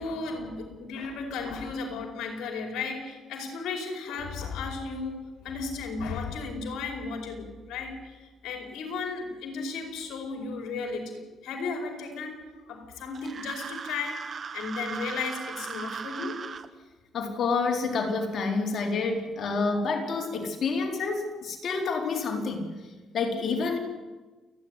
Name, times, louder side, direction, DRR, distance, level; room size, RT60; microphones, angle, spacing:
voice 1, 0.0-16.6, left 4 dB, 85° left, 3 dB, 4.8 m, -35 dB
sound 1, 13.1-16.7, right 6 dB, 45° right, 1.4 m, -38 dB
voice 2, 17.1-22.8 23.1-23.8, left 4 dB, 60° left, 2 dB, 4.2 m, -28 dB
28.5 x 10.5 x 9.7 m, 1.2 s
cardioid pair, 90°, 0 cm